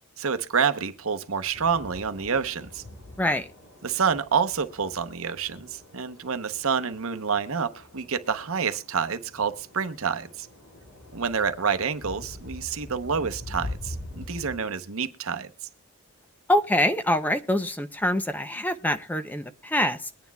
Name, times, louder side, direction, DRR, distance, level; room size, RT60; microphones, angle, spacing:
voice 1, 0.2-2.8 3.8-10.5 11.1-15.5, right 6 dB, 65° right, 0.8 m, -28 dB
sound 1, 1.5-14.6, left 1 dB, 80° left, 6.9 m, -43 dB
voice 2, 16.5-20.1, left 1 dB, 10° left, 0.5 m, -25 dB
22.5 x 9.5 x 2.3 m
head